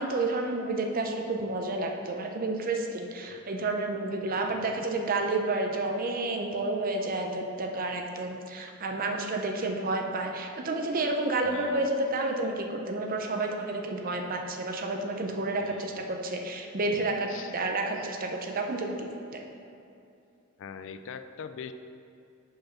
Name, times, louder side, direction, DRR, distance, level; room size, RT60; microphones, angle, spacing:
voice 1, 0.0-19.4, right 2 dB, 45° right, 3 dB, 0.6 m, -30 dB
voice 2, 11.4-11.9 15.6-16.0 17.3-17.5 20.6-21.7, left 6 dB, 65° left, 10 dB, 0.3 m, -42 dB
5.1 x 4.6 x 5.8 m, 2.6 s
head